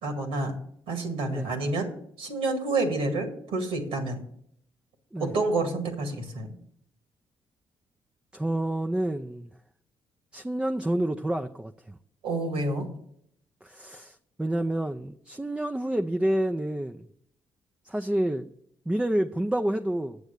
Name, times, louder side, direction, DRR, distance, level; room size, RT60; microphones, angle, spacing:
voice 1, 0.0-0.6 0.9-1.9 2.2-4.2 5.2-6.5 12.2-12.9, right 2 dB, 85° right, 4 dB, 1.9 m, -28 dB
voice 2, 8.3-9.5 10.3-12.0 13.6-17.1 17.8-18.5 18.9-20.2, right 1 dB, 10° right, 5 dB, 0.6 m, -28 dB
8.1 x 7.2 x 6.6 m, 0.70 s
supercardioid pair, 60°, 10 cm